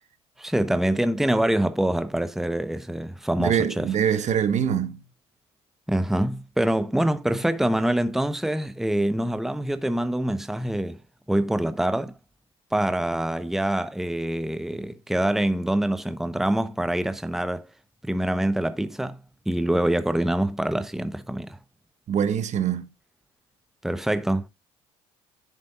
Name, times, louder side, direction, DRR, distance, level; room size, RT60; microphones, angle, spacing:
voice 1, 0.4-3.9 5.9-11.0 11.3-12.1 12.7-17.7 18.0-19.2 19.5-21.6 23.8-24.5, right 1 dB, ahead, 0.9 m, -25 dB
voice 2, 3.4-5.0 22.1-22.9, right 8 dB, 50° right, 1.2 m, -24 dB
11.0 x 7.3 x 2.4 m
hypercardioid pair, 60°, 15 cm